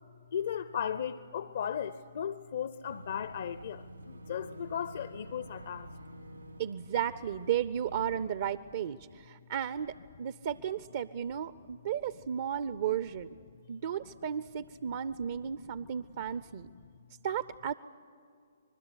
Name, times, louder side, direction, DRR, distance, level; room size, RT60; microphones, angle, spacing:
voice 1, 0.3-5.9 14.9-15.0 15.4-16.3 16.7-16.8, left 8 dB, 55° left, 0.6 m, -37 dB
Boat Water vehicle / Engine, 2.9-8.2, right 1 dB, 85° right, 4.0 m, -48 dB
voice 2, 6.6-9.9 10.2-13.3 13.7-16.7 17.2-17.7, right 9 dB, 50° right, 0.6 m, -34 dB
26.0 x 21.0 x 9.8 m
figure-of-eight pair, 130°, 0 cm